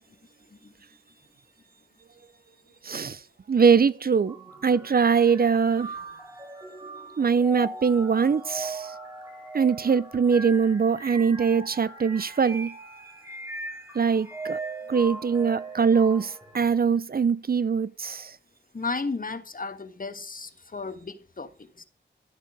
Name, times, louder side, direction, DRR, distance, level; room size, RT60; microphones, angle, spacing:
voice 1, 2.8-3.2 3.5-4.4 4.6-5.9 7.2-8.9 9.5-12.7 13.9-14.6 14.9-18.4, right 6 dB, 50° right, 0.6 m, -22 dB
sound 1, 4.3-16.7, right 2 dB, 15° right, 4.0 m, -39 dB
voice 2, 18.7-21.5 21.8-21.9, left 4 dB, 45° left, 1.4 m, -34 dB
12.5 x 8.6 x 4.9 m
wide cardioid pair, 70°, 19 cm